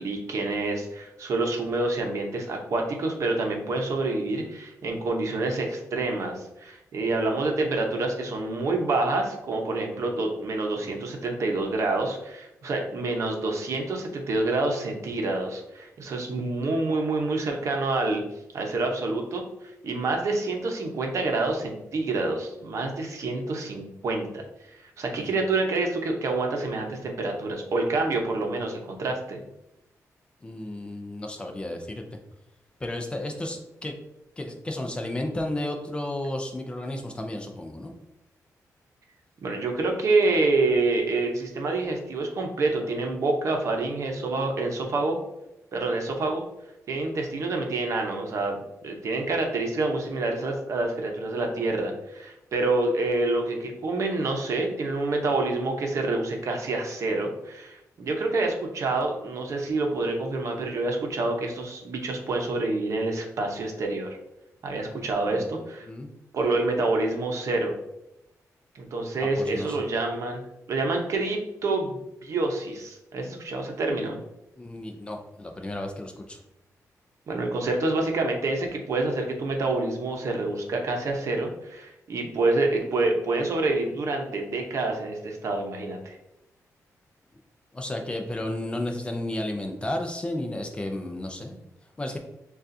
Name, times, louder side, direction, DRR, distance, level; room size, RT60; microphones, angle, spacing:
voice 1, 0.0-18.2 18.5-19.4 19.8-29.4 39.4-45.2 45.7-46.4 46.9-64.2 64.6-65.9 66.3-67.7 68.7-74.2 77.3-86.2, right 2 dB, 55° right, 2 dB, 0.8 m, -27 dB
voice 2, 30.4-32.0 32.8-34.0 34.4-37.9 65.2-65.5 65.8-66.1 69.2-69.9 74.6-76.4 87.7-91.7 92.0-92.2, left 1 dB, 15° left, 3 dB, 0.4 m, -33 dB
6.6 x 2.4 x 2.6 m, 0.89 s
wide cardioid pair, 160°, 6 cm